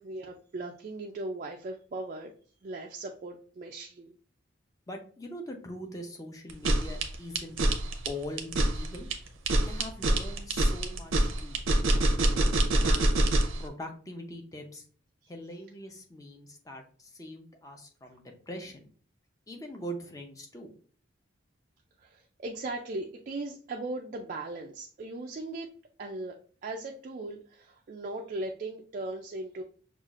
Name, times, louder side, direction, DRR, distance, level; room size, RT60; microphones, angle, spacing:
voice 1, 0.0-2.3 2.6-4.2 22.0-25.7 26.0-26.4 26.6-29.6, right 2 dB, 40° right, 1 dB, 0.3 m, -38 dB
voice 2, 4.9-7.6 8.1-9.1 9.6-11.6 12.4-13.3 13.6-14.8 15.3-18.9 19.5-20.7, equal, 15° left, 3 dB, 0.6 m, -42 dB
sound 1, 6.5-13.6, right 1 dB, 90° right, 0.6 m, -25 dB
5.7 x 2.4 x 2.4 m, 0.43 s
head